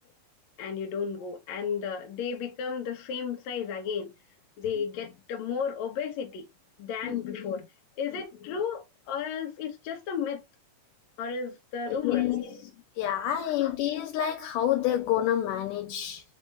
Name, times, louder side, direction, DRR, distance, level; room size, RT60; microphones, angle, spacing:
voice 1, 0.6-4.1 4.6-6.5 6.8-7.7 8.0-10.4 11.2-12.7 13.6-13.7, left 7 dB, 65° left, 2.0 m, -33 dB
voice 2, 11.9-12.4 13.0-16.2, left 11 dB, 80° left, 2.1 m, -28 dB
5.3 x 2.9 x 3.4 m
omnidirectional pair, 3.9 m